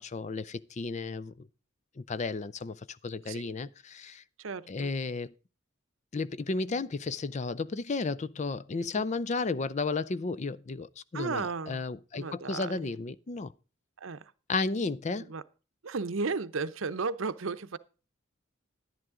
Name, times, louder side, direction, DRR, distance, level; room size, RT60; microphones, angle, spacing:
voice 1, 0.0-1.5 2.0-4.2 4.7-5.3 6.1-13.5 14.5-15.3, left 3 dB, 35° left, 0.5 m, -33 dB
voice 2, 4.4-4.9 8.9-9.0 11.1-11.8 12.1-12.9 14.0-14.3 15.3-15.4 15.8-17.8, right 4 dB, 75° right, 0.7 m, -34 dB
11.0 x 10.5 x 3.7 m
head